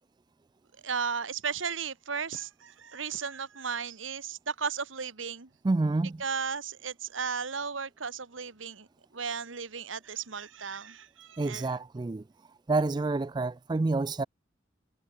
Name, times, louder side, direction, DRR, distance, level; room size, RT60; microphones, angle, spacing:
voice 1, 0.8-5.5 6.2-8.9 9.1-11.8, right 6 dB, 85° right, 1.6 m, -35 dB
voice 2, 5.6-6.2 11.4-12.2 12.7-14.2, right 3 dB, 20° right, 0.3 m, -28 dB
head